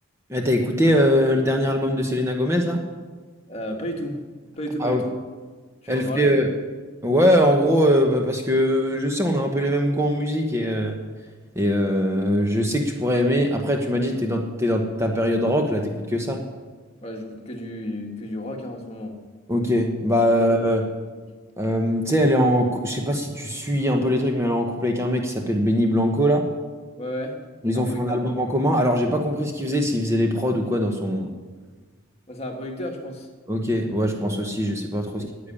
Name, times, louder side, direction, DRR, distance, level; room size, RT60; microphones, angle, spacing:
voice 1, 0.3-2.8 4.8-5.1 5.9-6.5 7.0-11.0 11.5-16.4 19.5-20.8 21.6-26.5 27.6-31.3 33.5-35.5, equal, 15° right, 2 dB, 1.0 m, -22 dB
voice 2, 3.5-4.2 4.6-5.1 5.8-6.3 17.0-19.2 20.3-20.7 27.0-27.4 27.7-28.0 32.3-33.3 35.2-35.3, left 1 dB, 30° left, 1 dB, 1.8 m, -32 dB
10.5 x 8.6 x 9.8 m, 1.4 s
head